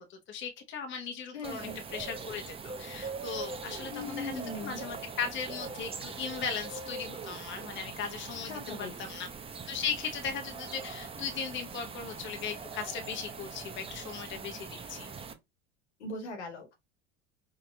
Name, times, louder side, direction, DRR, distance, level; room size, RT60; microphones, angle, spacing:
voice 1, 0.0-9.3 9.7-15.1, left 6 dB, 35° left, 1.0 m, -38 dB
voice 2, 1.3-1.8 3.9-4.8 8.5-9.0 16.0-16.7, left 2 dB, 80° left, 1.6 m, -39 dB
sound 1, 1.4-15.3, right 4 dB, 15° right, 0.6 m, -42 dB
5.0 x 2.8 x 2.2 m
hypercardioid pair, 80°, 33 cm